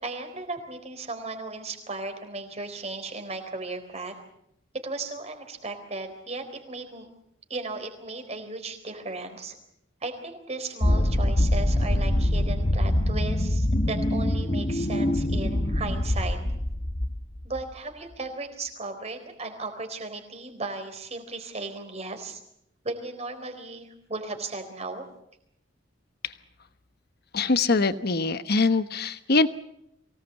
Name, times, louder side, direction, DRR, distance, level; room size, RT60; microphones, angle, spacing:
voice 1, 0.0-4.1 4.8-7.1 7.5-9.6 10.0-16.4 17.4-22.4 22.8-25.0, right 3 dB, 35° right, 6 dB, 3.9 m, -36 dB
sound 1, 10.8-17.6, left 1 dB, 35° left, 1.1 m, -24 dB
voice 2, 27.3-29.5, left 3 dB, 55° left, 12 dB, 1.1 m, -23 dB
24.0 x 18.0 x 8.2 m, 0.78 s
head